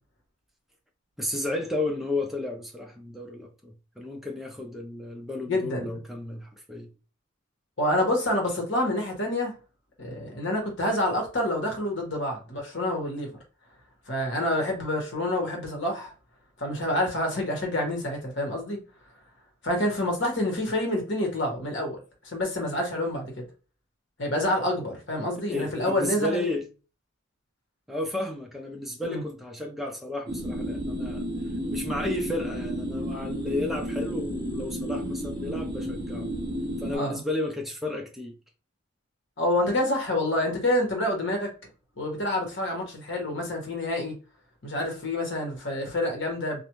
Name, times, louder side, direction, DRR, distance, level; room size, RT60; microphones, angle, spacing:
voice 1, 1.2-6.9 25.5-26.7 27.9-31.3 31.7-36.3 36.8-38.4, left 2 dB, ahead, 0.4 m, -32 dB
voice 2, 5.4-6.0 7.8-9.5 10.0-13.3 14.1-16.1 16.6-18.8 19.6-22.0 22.2-23.5 24.2-26.5 29.0-29.2 36.9-37.2 39.4-41.5 42.0-44.1 44.6-46.6, left 1 dB, 60° left, 1.1 m, -27 dB
sound 1, 30.3-37.0, equal, 20° right, 0.8 m, -32 dB
2.5 x 2.1 x 3.0 m
head